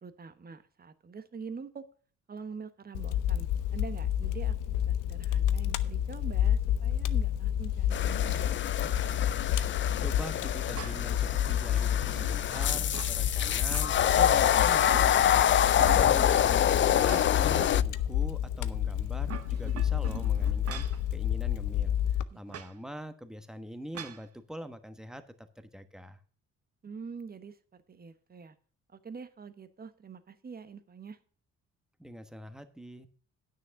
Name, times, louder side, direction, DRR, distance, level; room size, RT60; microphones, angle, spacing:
voice 1, 0.0-1.9 2.3-8.5 15.7-16.2 22.3-22.4 26.8-28.5 28.9-31.2, right 5 dB, 30° right, 11 dB, 1.1 m, -45 dB
Fire, 2.9-22.2, left 10 dB, 90° left, 0.7 m, -30 dB
sound 1, 7.9-17.8, left 10 dB, 40° left, 0.4 m, -26 dB
voice 2, 10.0-26.2 32.0-33.1, equal, ahead, 9 dB, 1.2 m, -44 dB
sound 2, 10.7-11.2 11.7-13.2 13.6-14.3 14.6-15.4 15.8-17.5 17.9-18.0 19.0-21.0 22.5-22.7 23.9-24.2, right 9 dB, 55° right, 0.9 m, -44 dB
9.5 x 6.4 x 6.4 m, 0.43 s
cardioid pair, 90°, 30 cm